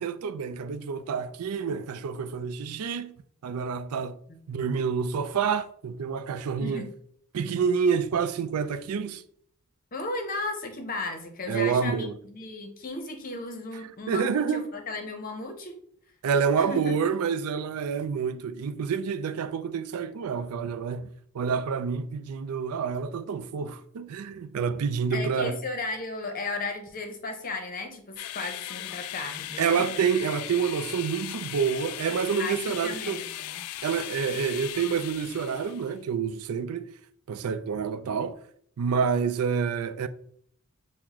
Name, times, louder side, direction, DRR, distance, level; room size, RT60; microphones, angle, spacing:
voice 1, 0.0-3.1 3.4-4.2 4.5-6.8 7.3-9.2 11.5-12.1 14.1-14.6 16.2-21.1 21.3-25.6 29.6-33.2 33.8-36.9 37.3-38.4 38.8-40.1, right 6 dB, 85° right, 0.4 m, -28 dB
voice 2, 6.6-6.9 9.9-15.7 16.6-16.9 25.1-29.9 32.4-33.6, left 2 dB, 40° left, 0.8 m, -35 dB
sound 1, 28.2-35.9, left 14 dB, 85° left, 0.3 m, -38 dB
6.0 x 2.1 x 3.6 m
head